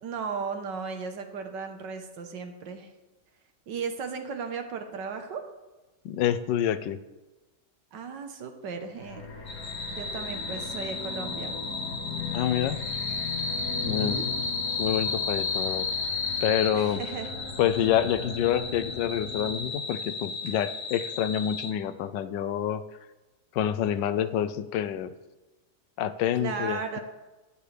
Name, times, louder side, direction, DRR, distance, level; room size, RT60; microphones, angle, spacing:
voice 1, 0.0-2.9 3.7-5.4 7.9-9.2 9.9-11.6 13.8-14.2 16.7-17.3 26.4-27.0, right 5 dB, 80° right, 6 dB, 1.8 m, -35 dB
voice 2, 6.0-7.0 12.3-12.8 13.9-14.2 14.8-15.9 16.4-17.0 17.6-22.8 23.5-25.1 26.0-27.0, left 10 dB, 85° left, 13 dB, 1.3 m, -27 dB
sound 1, 9.0-19.7, left 4 dB, 65° left, 2.9 m, -39 dB
sound 2, 9.5-21.7, left 4 dB, 35° left, 0.6 m, -33 dB
14.0 x 9.9 x 3.4 m, 1.1 s
omnidirectional pair, 1.9 m